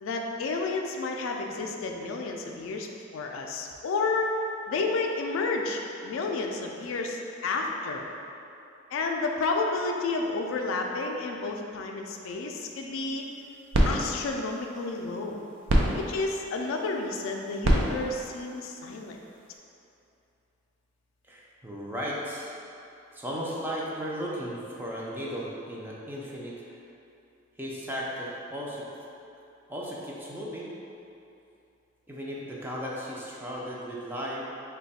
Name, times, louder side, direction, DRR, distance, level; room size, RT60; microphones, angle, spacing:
voice 1, 0.0-2.9 3.1-4.4 4.7-8.0 8.9-13.2 13.8-15.4 15.9-19.2, left 3 dB, 85° left, 2 dB, 0.3 m, -31 dB
sound 1, 13.2-19.6, right 1 dB, 80° right, 0.5 m, -30 dB
voice 2, 21.2-22.5 23.1-26.8 27.6-28.9 29.7-30.7 32.1-34.4, equal, 10° right, -5 dB, 0.4 m, -35 dB
3.1 x 2.2 x 4.1 m, 2.7 s
head